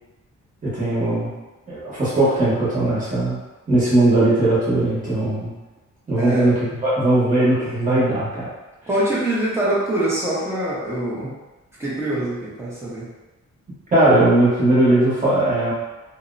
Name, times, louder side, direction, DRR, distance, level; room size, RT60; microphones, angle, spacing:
voice 1, 0.6-1.3 1.7-3.4 3.7-5.5 6.1-8.5 13.9-15.7, right 2 dB, 25° right, -10 dB, 1.0 m, -18 dB
voice 2, 6.2-6.5 8.9-11.3 11.8-13.1, right 1 dB, 10° right, -8 dB, 0.6 m, -24 dB
2.7 x 2.0 x 2.5 m, 1.1 s
wide cardioid pair, 180°, 30 cm